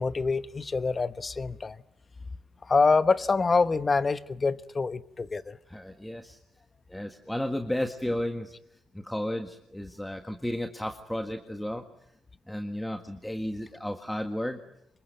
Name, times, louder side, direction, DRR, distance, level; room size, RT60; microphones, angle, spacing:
voice 1, 0.0-1.8 2.7-5.6, left 4 dB, 30° left, 1.1 m, -25 dB
voice 2, 5.7-6.4 6.9-8.5 8.9-11.8 12.5-14.6, left 1 dB, 5° left, 1.7 m, -33 dB
26.5 x 23.0 x 9.2 m
cardioid pair, 90°, 0 cm